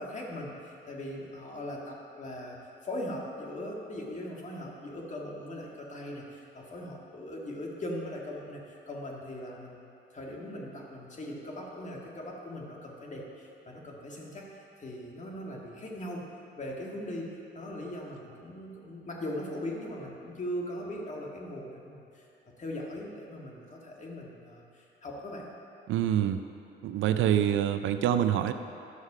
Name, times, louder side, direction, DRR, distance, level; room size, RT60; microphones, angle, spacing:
voice 1, 0.0-9.9 10.1-16.2 16.6-22.3 22.6-25.5, left 1 dB, 40° left, -2 dB, 1.9 m, -40 dB
voice 2, 25.9-26.4 26.8-28.5, right 10 dB, 75° right, 9 dB, 0.5 m, -26 dB
11.5 x 6.5 x 4.9 m, 2.7 s
cardioid pair, 90°, 20 cm